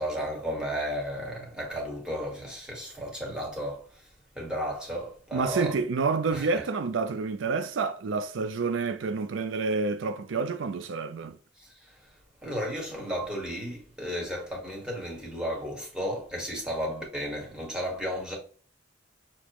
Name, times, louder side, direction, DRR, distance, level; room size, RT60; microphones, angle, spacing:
voice 1, 0.0-4.0 4.3-5.8 6.3-6.4 11.6-11.9 12.4-18.4, equal, 5° right, 1.6 m, -33 dB
voice 2, 5.3-11.4, right 4 dB, 90° right, 0.4 m, -28 dB
6.1 x 2.9 x 3.0 m
head